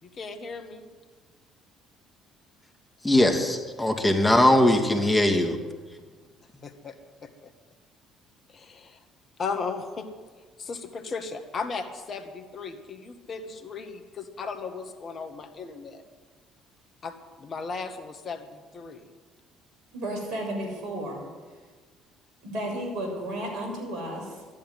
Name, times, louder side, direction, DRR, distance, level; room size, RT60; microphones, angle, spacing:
voice 1, 0.0-0.8 6.6-7.5 8.5-9.0 9.4-10.1 10.6-16.0 17.0-19.1, left 4 dB, 45° left, 7 dB, 1.9 m, -36 dB
voice 2, 3.0-5.6, left 1 dB, 15° left, 4 dB, 2.6 m, -20 dB
voice 3, 19.9-21.2 22.4-24.6, right 1 dB, 65° right, 2 dB, 6.7 m, -33 dB
13.5 x 11.0 x 9.6 m, 1.4 s
hypercardioid pair, 55°, 0 cm